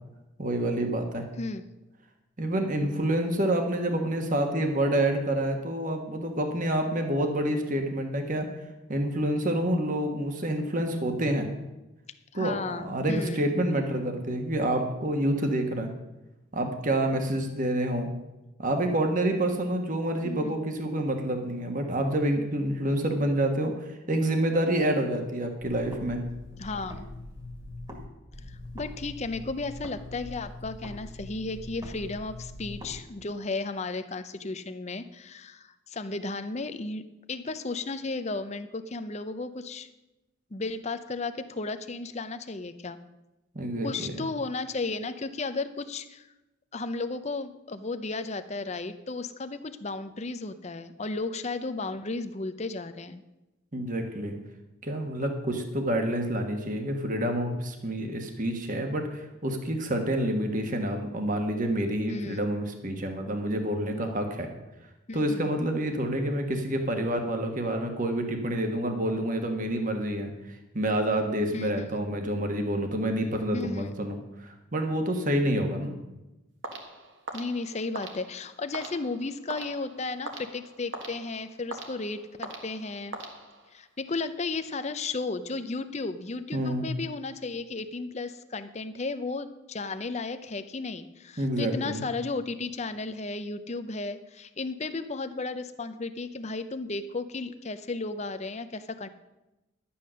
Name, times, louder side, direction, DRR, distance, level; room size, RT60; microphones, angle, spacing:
voice 1, 0.4-1.2 2.4-8.5 8.9-11.5 12.3-15.9 16.5-18.1 18.6-26.2 43.5-44.1 53.7-54.3 54.8-64.5 65.1-70.3 70.7-75.9 86.5-86.9 91.4-92.0, right 1 dB, 40° right, 4 dB, 1.4 m, -28 dB
voice 2, 12.3-13.4 20.2-20.5 26.6-27.1 28.5-37.0 37.3-39.9 40.5-43.0 43.8-46.3 46.7-53.2 62.1-62.4 65.1-65.5 71.5-71.9 73.5-73.9 77.3-83.2 83.7-99.1, left 3 dB, 30° left, 10 dB, 0.6 m, -34 dB
sound 1, 25.6-28.1 28.3-33.0, left 1 dB, 20° right, 1.9 m, -42 dB
sound 2, 76.6-83.9, right 2 dB, 60° right, 1.6 m, -42 dB
11.5 x 8.6 x 6.3 m, 1.0 s
head